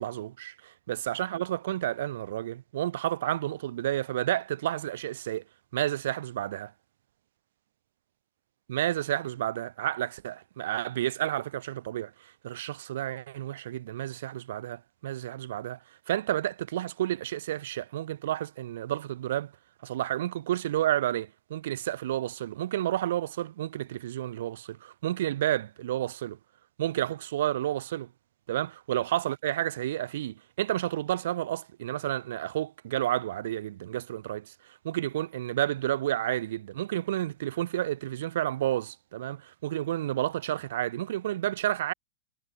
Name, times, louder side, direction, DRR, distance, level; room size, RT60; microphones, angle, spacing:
voice 1, 0.0-5.4 5.7-6.7 8.7-15.8 16.1-19.5 19.8-26.4 26.8-28.1 28.5-34.5 34.8-41.9, right 13 dB, 55° right, 4.8 m, -31 dB
supercardioid pair, 175°, 0 cm